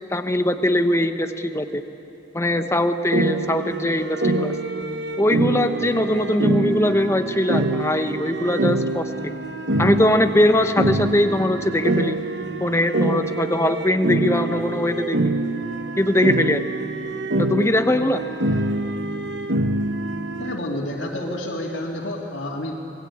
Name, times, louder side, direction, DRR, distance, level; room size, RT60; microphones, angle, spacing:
voice 1, 0.1-1.8 2.3-4.6 5.2-9.1 9.8-12.2 12.6-15.3 16.0-16.6 17.4-18.2, left 1 dB, 15° left, 8 dB, 1.0 m, -21 dB
sound 1, 3.1-20.6, right 2 dB, 65° right, 1.1 m, -25 dB
voice 2, 20.4-22.7, left 1 dB, 75° left, -5 dB, 2.9 m, -29 dB
28.0 x 21.5 x 8.7 m, 2.9 s
head